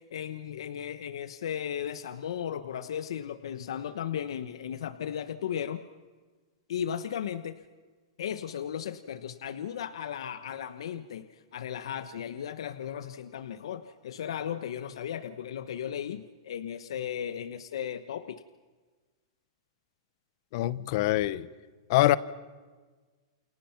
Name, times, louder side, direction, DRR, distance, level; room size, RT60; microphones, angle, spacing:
voice 1, 0.0-5.8 6.7-7.6 8.2-18.4, left 9 dB, 75° left, 1.1 m, -36 dB
voice 2, 20.5-21.5 21.9-22.2, left 15 dB, 50° left, 0.9 m, -24 dB
29.5 x 28.5 x 6.0 m
hypercardioid pair, 150°, 3 cm